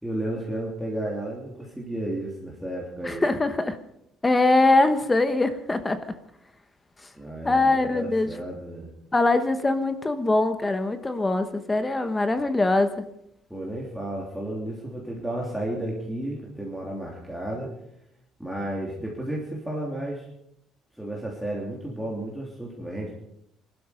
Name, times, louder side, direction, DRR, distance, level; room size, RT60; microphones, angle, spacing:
voice 1, 0.0-3.4 7.1-8.9 13.5-17.7 18.4-20.3 21.0-23.1, right 1 dB, ahead, -4 dB, 3.2 m, -32 dB
voice 2, 3.0-3.8 4.2-6.0 7.4-8.3 9.1-13.0, left 2 dB, 15° left, 10 dB, 1.0 m, -22 dB
21.5 x 12.5 x 5.2 m, 0.76 s
cardioid pair, 140°, 0 cm